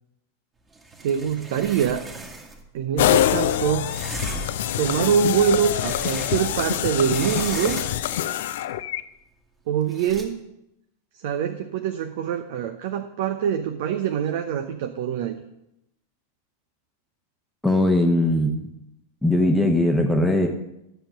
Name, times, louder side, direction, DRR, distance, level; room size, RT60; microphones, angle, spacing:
sound 1, 0.7-2.7 3.8-4.7 5.3-6.7 7.0-8.2 9.9-10.2, right 3 dB, 15° right, 1.9 m, -38 dB
voice 1, 1.0-2.1 2.7-3.9 4.8-7.8 9.7-10.4 11.2-15.4, right 8 dB, 50° right, 7 dB, 0.8 m, -24 dB
sound 2, 3.0-9.0, left 12 dB, 55° left, 0.5 m, -25 dB
voice 2, 17.6-18.7 19.2-20.5, left 1 dB, 5° left, 2 dB, 1.1 m, -20 dB
11.5 x 7.2 x 6.6 m, 0.84 s
figure-of-eight pair, 90°, 0 cm